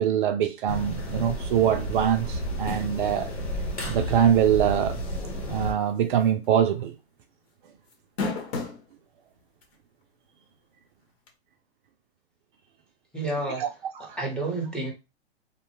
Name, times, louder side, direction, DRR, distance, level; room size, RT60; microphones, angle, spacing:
voice 1, 0.0-3.3 3.8-5.0 5.5-6.9 13.6-13.7 14.1-14.2, right 9 dB, 50° right, 0.5 m, -23 dB
sound 1, 0.7-5.7, equal, 90° left, 1.5 m, -32 dB
sound 2, 6.2-6.4 6.8-6.9 7.9-8.8 9.6-9.7 11.3-11.4, left 3 dB, 70° left, 1.1 m, -30 dB
voice 2, 13.1-13.7 14.2-14.9, right 2 dB, 5° left, 0.8 m, -29 dB
2.6 x 2.1 x 3.0 m
hypercardioid pair, 120°, 33 cm